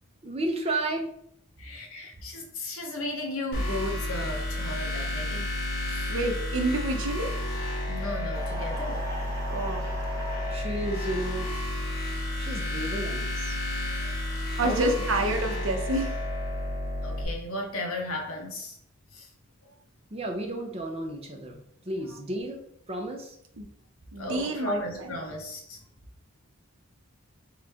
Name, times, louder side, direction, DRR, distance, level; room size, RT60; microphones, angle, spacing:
voice 1, 0.2-1.1 10.5-11.5 12.4-13.6 20.1-22.6 22.9-23.4, right 1 dB, 25° right, 0.7 m, -33 dB
voice 2, 1.6-5.5 5.9-6.1 7.9-9.0 13.7-15.0 17.0-18.8 19.1-19.3 24.2-25.8, left 1 dB, 70° left, 1.0 m, -35 dB
sound 1, 3.5-17.2, left 1 dB, 45° left, 0.9 m, -31 dB
voice 3, 6.1-7.3 9.5-9.9 14.6-16.2 23.6-23.7 24.1-25.1, right 2 dB, 60° right, 0.7 m, -28 dB
sound 2, 8.3-10.6, right 1 dB, 15° left, 0.8 m, -38 dB
3.8 x 3.2 x 3.5 m
head